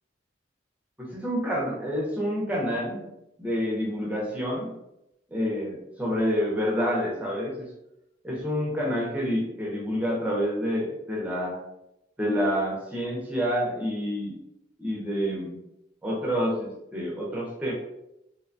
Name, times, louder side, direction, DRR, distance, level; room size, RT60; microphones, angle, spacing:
voice 1, 1.0-3.1 3.4-4.7 5.3-7.7 8.2-11.6 12.2-14.4 14.8-15.6 16.0-17.7, equal, 10° right, -3 dB, 0.5 m, -28 dB
2.7 x 2.2 x 2.5 m, 0.85 s
head